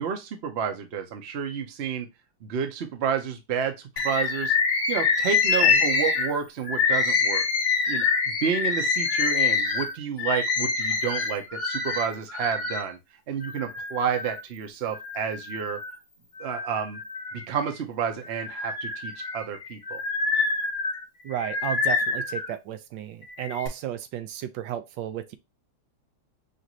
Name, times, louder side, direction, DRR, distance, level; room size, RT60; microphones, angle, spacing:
voice 1, 0.0-2.1 2.4-4.5 4.9-7.4 7.9-13.0 13.3-15.8 16.4-17.0 17.3-20.0, right 7 dB, 50° right, 0.8 m, -30 dB
Bird, 4.0-12.9 13.4-14.4 14.9-15.9 16.4-17.7 18.2-22.5 23.2-23.7, left 5 dB, 55° left, 1.4 m, -26 dB
voice 2, 21.2-25.4, right 11 dB, 80° right, 1.2 m, -33 dB
5.1 x 2.6 x 3.0 m
omnidirectional pair, 2.0 m